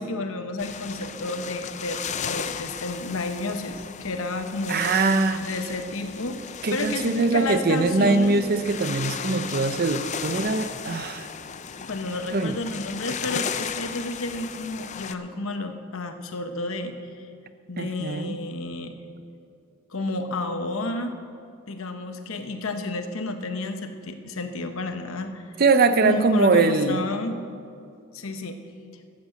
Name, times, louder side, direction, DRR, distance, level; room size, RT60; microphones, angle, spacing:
voice 1, 0.0-4.8 5.4-8.5 11.9-17.0 17.7-19.0 19.9-21.1 21.7-25.4 26.0-27.4 28.1-28.6, left 2 dB, 65° left, 7 dB, 1.0 m, -31 dB
sound 1, 0.6-15.1, left 7 dB, 30° left, 0.4 m, -35 dB
voice 2, 4.7-5.5 6.6-11.3 12.3-12.6 17.8-18.4 25.6-27.0, right 3 dB, 45° right, 11 dB, 0.6 m, -22 dB
12.5 x 8.3 x 7.7 m, 2.5 s
head